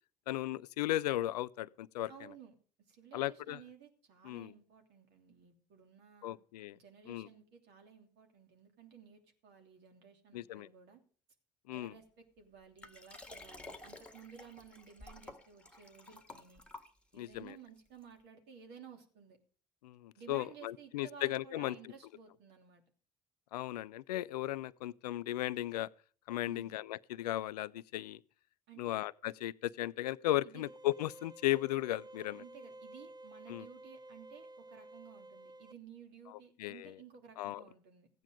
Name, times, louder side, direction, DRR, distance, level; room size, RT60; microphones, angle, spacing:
voice 1, 0.3-2.1 3.1-3.6 4.2-4.5 6.2-6.8 7.1-7.3 10.3-10.7 11.7-11.9 17.2-17.5 19.8-21.8 23.5-25.9 26.3-28.2 28.8-32.4 33.5-33.7 36.3-36.9 37.4-37.6, left 15 dB, 75° left, 0.5 m, -36 dB
voice 2, 2.1-2.5 2.9-6.4 6.7-11.0 11.7-16.6 17.1-19.4 20.1-22.8 26.4-26.8 28.7-29.0 30.4-30.6 32.4-38.1, right 7 dB, 55° right, 3.0 m, -55 dB
Liquid, 12.8-17.4 18.0-18.1, left 2 dB, 5° left, 1.9 m, -52 dB
sound 1, 30.7-35.7, right 1 dB, 20° right, 0.7 m, -53 dB
15.5 x 9.4 x 5.1 m
figure-of-eight pair, 55°, 21 cm